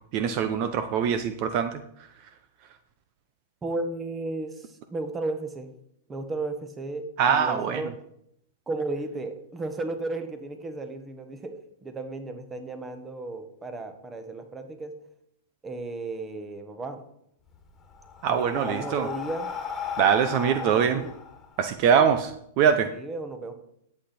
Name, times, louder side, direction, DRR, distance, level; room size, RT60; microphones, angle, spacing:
voice 1, 0.1-1.8 7.2-7.8 18.2-19.1 20.0-21.0 21.6-22.9, right 7 dB, 45° right, 9 dB, 0.8 m, -23 dB
voice 2, 3.6-5.7 6.1-7.9 8.7-15.0 15.6-17.0 18.3-19.5 20.4-21.1 22.9-23.5, right 2 dB, 15° right, 8 dB, 1.4 m, -34 dB
Breathing, 17.5-22.2, left 7 dB, 15° left, 2.1 m, -36 dB
11.0 x 8.2 x 4.4 m, 0.73 s
hypercardioid pair, 130°, 0 cm